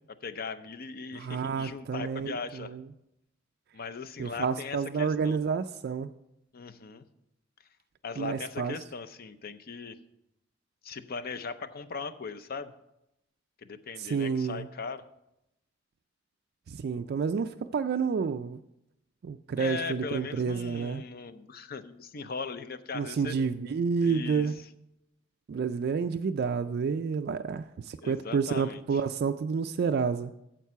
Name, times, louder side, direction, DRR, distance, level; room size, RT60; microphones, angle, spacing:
voice 1, 0.1-2.8 3.7-5.4 6.5-7.0 8.0-10.0 10.8-12.7 13.6-15.1 19.6-23.4 24.0-24.7 28.0-29.0, left 4 dB, 50° left, 12 dB, 0.6 m, -39 dB
voice 2, 1.1-2.8 4.2-6.1 8.2-8.7 14.0-14.7 16.7-18.6 19.2-21.0 22.9-24.6 25.5-30.3, right 5 dB, 55° right, 7 dB, 0.3 m, -29 dB
9.2 x 7.4 x 5.6 m, 0.85 s
head